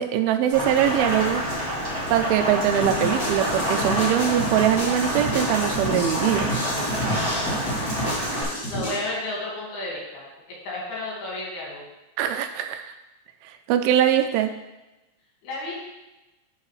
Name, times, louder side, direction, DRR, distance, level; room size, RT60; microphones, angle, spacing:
voice 1, 0.0-1.4 2.1-6.5 12.2-12.9 13.4-14.5, right 10 dB, 80° right, 7 dB, 2.3 m, -22 dB
Rain, 0.5-8.4, equal, 20° right, 2.1 m, -27 dB
sound 1, 2.8-9.0, equal, 40° left, 1.4 m, -30 dB
voice 2, 7.9-8.4 8.7-11.9 15.4-15.7, left 2 dB, 75° left, -4 dB, 3.9 m, -33 dB
12.0 x 4.8 x 3.2 m, 1.0 s
omnidirectional pair, 4.5 m